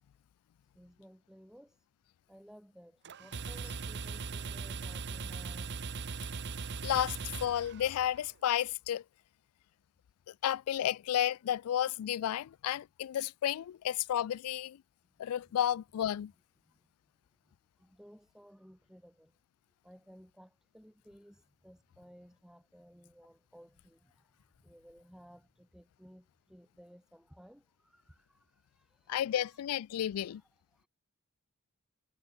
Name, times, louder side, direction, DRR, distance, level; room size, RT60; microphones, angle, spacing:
voice 1, 0.7-1.9 2.3-5.7 16.7-16.9 17.4-19.4 19.8-29.6 30.2-30.9, equal, 5° right, 6.8 m, -58 dB
sound 1, 3.1-8.2, right 4 dB, 55° right, 0.8 m, -40 dB
voice 2, 6.8-9.0 10.4-14.8 15.2-16.3 29.1-30.4, left 10 dB, 90° left, 0.3 m, -32 dB
head